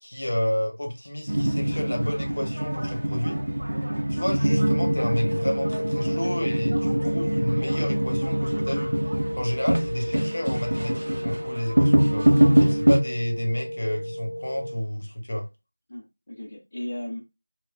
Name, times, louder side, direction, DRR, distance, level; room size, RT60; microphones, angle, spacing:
voice 1, 0.0-3.4 4.1-9.0 9.4-12.3 12.7-15.5, equal, 50° left, 1.0 m, -30 dB
sound 1, 1.3-13.0, right 1 dB, 65° right, 0.6 m, -24 dB
sound 2, 4.5-14.8, equal, 5° left, 1.8 m, -33 dB
voice 2, 12.3-12.7 15.9-17.2, left 1 dB, 20° left, 0.6 m, -36 dB
4.7 x 2.2 x 2.3 m
figure-of-eight pair, 180°, 0 cm